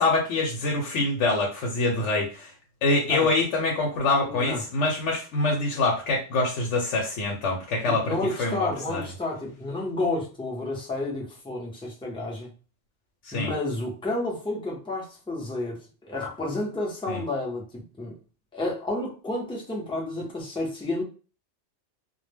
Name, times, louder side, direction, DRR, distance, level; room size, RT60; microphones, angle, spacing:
voice 1, 0.0-2.5 2.8-9.0 13.2-13.5 17.1-17.2, left 2 dB, 80° left, 0.9 m, -25 dB
voice 2, 4.2-4.6 7.9-12.5 13.3-18.2 18.5-21.0, left 2 dB, 5° left, 0.4 m, -31 dB
2.1 x 2.1 x 3.2 m
omnidirectional pair, 1.2 m